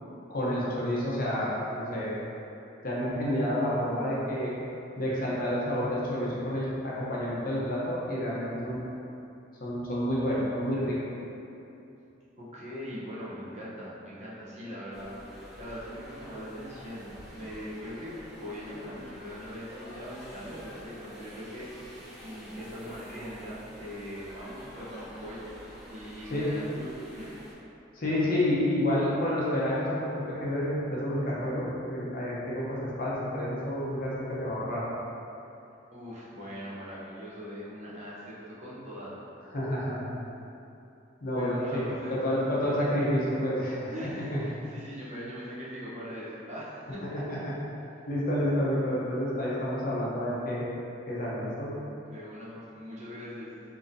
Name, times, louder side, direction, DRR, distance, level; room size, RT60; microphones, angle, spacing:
voice 1, 0.3-2.1 2.8-4.5 5.0-8.8 9.6-11.0 26.3-26.5 27.9-30.1 30.4-34.8 39.5-40.1 41.2-43.9 44.3-44.4 47.0-47.5 48.1-50.7 51.1-51.7, left 1 dB, 45° left, -7 dB, 0.7 m, -29 dB
voice 2, 12.4-15.1 15.6-21.7 22.2-25.4 25.9-27.3 35.9-39.1 41.3-42.1 43.8-47.2 52.0-53.7, equal, 35° right, -8 dB, 0.7 m, -41 dB
sound 1, 14.9-27.5, equal, ahead, 0.9 m, -48 dB
3.8 x 2.8 x 2.6 m, 2.8 s
head